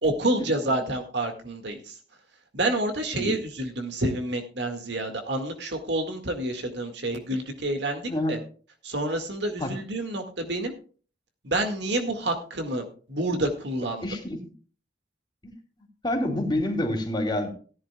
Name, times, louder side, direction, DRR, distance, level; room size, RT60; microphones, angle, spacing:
voice 1, 0.0-2.0 2.5-8.4 8.8-10.7 11.4-14.1, right 1 dB, 75° right, 5 dB, 2.0 m, -28 dB
voice 2, 8.1-8.4 9.6-9.7 14.0-14.4 15.4-15.5 16.0-17.5, left 1 dB, 25° left, 1 dB, 2.8 m, -27 dB
17.0 x 11.0 x 2.3 m, 0.39 s
head